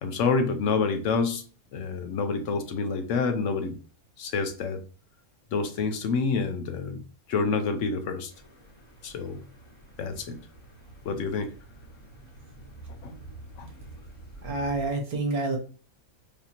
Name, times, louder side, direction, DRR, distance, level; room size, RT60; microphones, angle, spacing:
voice 1, 0.0-1.4 1.7-3.8 4.2-4.8 5.5-7.0 7.3-8.3 9.0-9.4 10.0-10.4 11.0-11.5 13.0-13.1 13.6-13.7, left 4 dB, 70° left, 8 dB, 0.8 m, -28 dB
sound 1, 8.3-14.9, right 2 dB, 20° left, 0.9 m, -47 dB
voice 2, 14.4-15.6, right 2 dB, 80° right, 3 dB, 1.5 m, -28 dB
4.9 x 2.7 x 2.8 m, 0.39 s
omnidirectional pair, 1.5 m